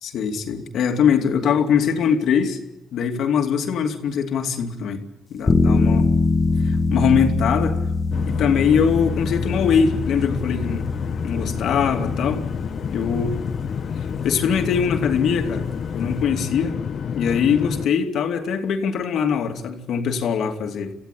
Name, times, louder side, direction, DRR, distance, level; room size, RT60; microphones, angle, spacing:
voice 1, 0.0-2.6 2.9-5.0 5.3-6.1 6.6-7.8 8.3-10.9 11.2-12.4 12.9-13.3 14.2-15.7 15.9-16.8 17.1-20.9, left 7 dB, 75° left, 4 dB, 2.6 m, -22 dB
sound 1, 5.5-16.2, left 3 dB, 25° left, 1.7 m, -24 dB
sound 2, 8.1-17.9, left 7 dB, 55° left, 1.0 m, -29 dB
26.5 x 15.5 x 8.4 m, 0.87 s
cardioid pair, 90°, 0 cm